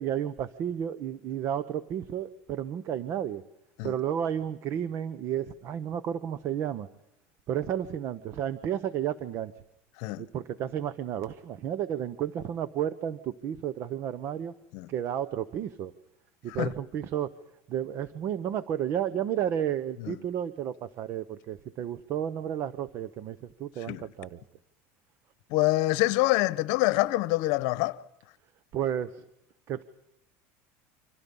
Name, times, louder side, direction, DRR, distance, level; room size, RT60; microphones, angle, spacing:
voice 1, 0.0-3.4 3.8-6.9 7.5-9.5 10.2-14.5 14.9-15.9 16.4-17.3 17.7-24.4 28.7-29.2 29.7-29.8, right 10 dB, 40° right, 0.9 m, -32 dB
voice 2, 25.5-28.0, left 19 dB, 60° left, 1.1 m, -26 dB
28.5 x 25.5 x 5.5 m
cardioid pair, 155°, 7 cm